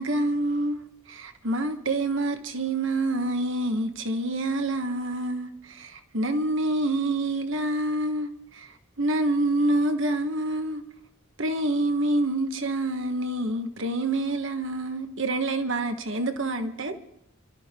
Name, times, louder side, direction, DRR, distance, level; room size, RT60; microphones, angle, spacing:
voice 1, 0.0-8.7 9.0-10.8 11.4-17.0, right 2 dB, 60° right, 1.3 m, -27 dB
28.0 x 13.0 x 3.7 m
head